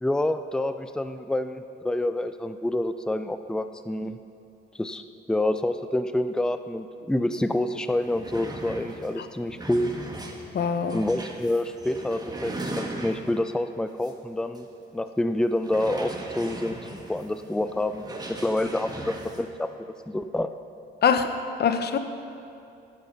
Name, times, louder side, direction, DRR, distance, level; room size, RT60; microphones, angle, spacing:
voice 1, 0.0-4.2 4.7-5.0 5.3-9.9 10.9-14.7 14.9-19.7 20.1-20.5, left 1 dB, 5° left, 10 dB, 0.5 m, -27 dB
sound 1, 7.4-7.5 7.8-13.5 14.0-14.1 14.5-14.6 15.6-19.4, right 1 dB, 20° right, 1.6 m, -38 dB
voice 2, 10.5-11.0 21.0-21.3 21.6-22.0, left 7 dB, 55° left, 8 dB, 1.0 m, -23 dB
15.5 x 9.7 x 5.3 m, 2.6 s
cardioid pair, 90°, 20 cm